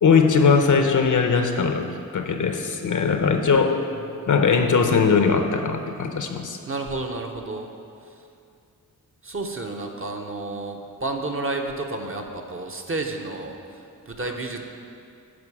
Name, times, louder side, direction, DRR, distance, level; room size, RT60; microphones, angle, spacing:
voice 1, 0.0-1.9 2.1-3.8 4.3-6.6 14.2-14.3, left 5 dB, 60° left, 5 dB, 0.8 m, -20 dB
voice 2, 6.7-7.7 9.2-13.6 14.1-14.6, right 2 dB, 35° right, 2 dB, 0.9 m, -31 dB
11.0 x 4.7 x 4.8 m, 2.5 s
cardioid pair, 65°, 35 cm